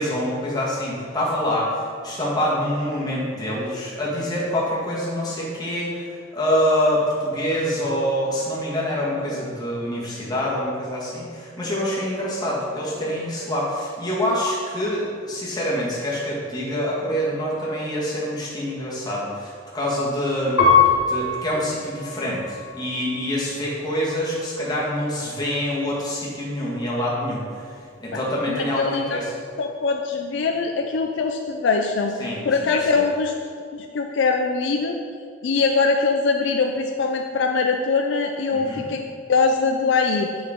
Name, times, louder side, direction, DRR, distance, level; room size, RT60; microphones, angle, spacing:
voice 1, 0.0-20.6 21.1-27.7 28.0-29.3 32.2-33.0 38.5-38.8, equal, 20° left, -5 dB, 1.6 m, -26 dB
Piano, 20.6-23.3 24.0-24.7, left 5 dB, 85° left, 1.6 m, -23 dB
voice 2, 28.5-29.2 29.6-32.1 32.4-33.3 33.7-35.0 35.4-39.0 39.3-40.3, left 4 dB, 65° left, 3 dB, 0.4 m, -22 dB
7.5 x 6.0 x 3.6 m, 2.2 s
head